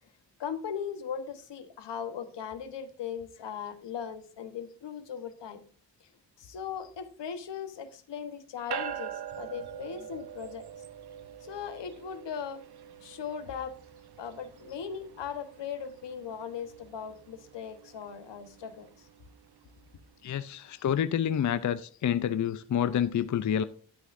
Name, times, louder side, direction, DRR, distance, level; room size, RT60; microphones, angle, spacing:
voice 1, 0.4-5.6 6.4-10.7 11.4-12.6 13.0-13.8 14.2-19.1, left 7 dB, 80° left, 1.2 m, -38 dB
sound 1, 8.7-20.3, right 9 dB, 65° right, 0.8 m, -44 dB
voice 2, 20.2-23.6, left 9 dB, 45° left, 0.5 m, -28 dB
11.5 x 9.2 x 2.6 m
wide cardioid pair, 105°, 42 cm